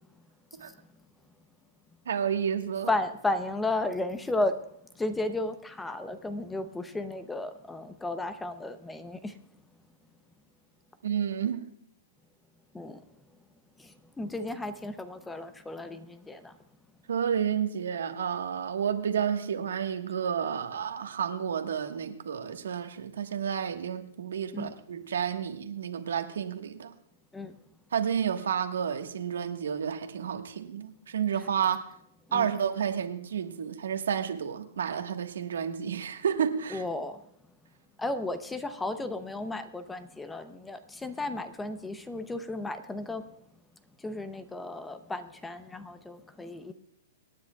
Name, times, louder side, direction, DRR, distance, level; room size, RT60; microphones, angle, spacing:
voice 1, 2.0-2.9 11.0-11.6 17.1-26.9 27.9-31.8 32.3-36.8, right 8 dB, 90° right, 5 dB, 1.3 m, -30 dB
voice 2, 2.9-4.6 5.0-9.4 12.7-13.0 13.8-16.5 24.5-24.7 27.3-27.5 32.3-32.5 36.7-37.2 38.0-43.3 44.0-46.7, left 2 dB, 5° left, 11 dB, 0.6 m, -34 dB
26.0 x 9.8 x 2.3 m, 0.70 s
hypercardioid pair, 150°, 0 cm